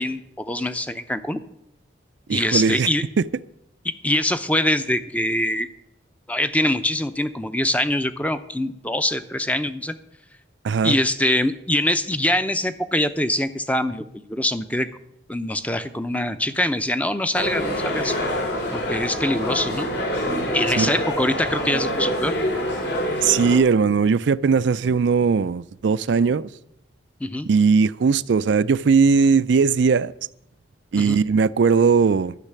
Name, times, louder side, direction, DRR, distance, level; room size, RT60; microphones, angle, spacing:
voice 1, 0.0-1.4 2.3-3.0 3.8-5.7 6.3-9.9 10.8-14.9 15.3-18.2 18.7-19.9 20.5-22.3 27.2-27.5 31.0-31.2, left 1 dB, 10° left, 0.6 m, -24 dB
voice 2, 2.3-2.9 3.2-3.3 10.6-11.0 20.8-20.9 23.2-26.5 27.4-30.1 30.9-32.3, right 5 dB, 75° right, 0.4 m, -19 dB
sound 1, 17.3-23.6, equal, 65° left, 3.1 m, -26 dB
12.0 x 6.6 x 9.7 m
head